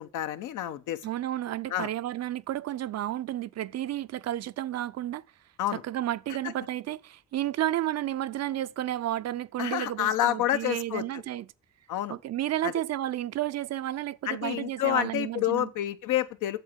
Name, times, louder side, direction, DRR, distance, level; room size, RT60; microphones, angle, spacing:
voice 1, 0.0-1.0 1.7-1.9 5.6-5.8 9.6-11.0 11.9-12.2 12.6-12.7 14.3-16.6, left 12 dB, 80° left, 0.9 m, -28 dB
voice 2, 1.0-5.2 5.7-11.5 12.1-15.7, right 13 dB, 60° right, 0.5 m, -32 dB
8.1 x 7.2 x 7.3 m
cardioid pair, 90°, 30 cm